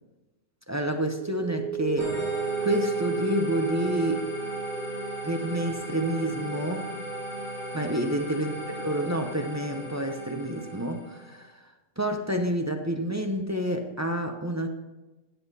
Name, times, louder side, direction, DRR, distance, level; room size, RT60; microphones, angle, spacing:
voice 1, 0.7-4.3 5.2-6.9 7.7-11.7 12.0-14.7, right 1 dB, 20° right, 4 dB, 0.5 m, -29 dB
sound 1, 1.1-8.5, right 5 dB, ahead, 2.2 m, -34 dB
sound 2, 2.0-11.3, equal, 35° left, 4.4 m, -37 dB
15.0 x 7.4 x 4.1 m, 1.1 s
omnidirectional pair, 1.5 m